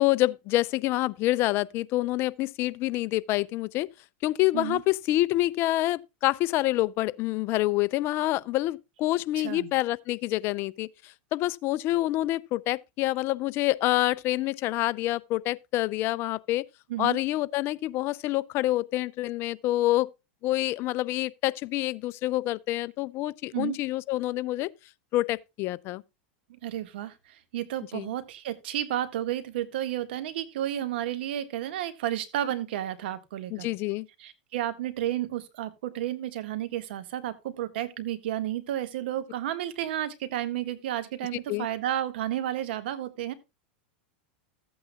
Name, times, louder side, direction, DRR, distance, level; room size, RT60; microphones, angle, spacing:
voice 1, 0.0-3.9 4.2-16.7 17.0-20.1 20.4-24.7 25.1-26.0 27.9-28.1 33.5-34.1 41.5-41.7, left 17 dB, 45° left, 0.5 m, -27 dB
voice 2, 16.9-17.2 23.5-23.8 26.6-33.7 34.2-43.3, right 12 dB, 70° right, 1.7 m, -32 dB
14.5 x 8.6 x 2.3 m
supercardioid pair, 120°, 6 cm